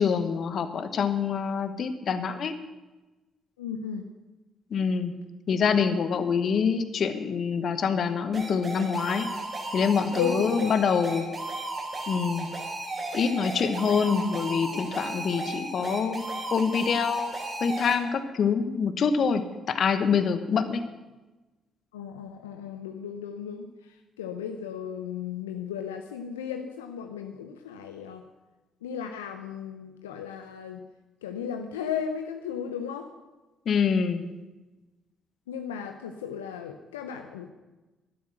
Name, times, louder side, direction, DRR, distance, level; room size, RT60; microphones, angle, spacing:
voice 1, 0.0-2.5 4.7-5.1 5.5-9.3 9.7-11.2 12.1-12.5 13.1-17.3 17.6-20.8 33.6-34.2, left 6 dB, 55° left, 10 dB, 1.2 m, -25 dB
voice 2, 3.6-4.1 10.2-10.7 21.9-23.7 24.2-28.2 28.8-30.8 31.2-33.1 35.5-37.5, left 7 dB, 85° left, 5 dB, 0.7 m, -35 dB
sound 1, 8.3-17.9, right 2 dB, 40° right, 5.4 m, -35 dB
12.5 x 11.5 x 6.2 m, 1.1 s
hypercardioid pair, 45°, 0 cm